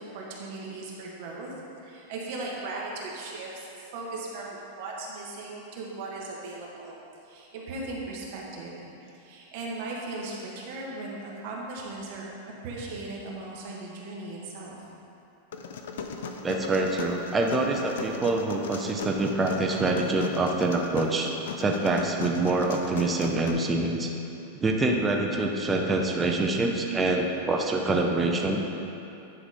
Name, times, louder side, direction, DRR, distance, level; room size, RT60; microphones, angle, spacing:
voice 1, 0.0-1.5 1.8-7.0 7.2-12.3 12.6-14.7, right 2 dB, 40° right, -3 dB, 1.3 m, -38 dB
sound 1, 15.5-23.5, left 5 dB, 70° left, 0.6 m, -37 dB
voice 2, 16.4-21.3 21.6-24.1 24.5-28.6, right 2 dB, 10° right, 0 dB, 0.4 m, -25 dB
9.9 x 4.8 x 4.2 m, 2.8 s
supercardioid pair, 175°, 0 cm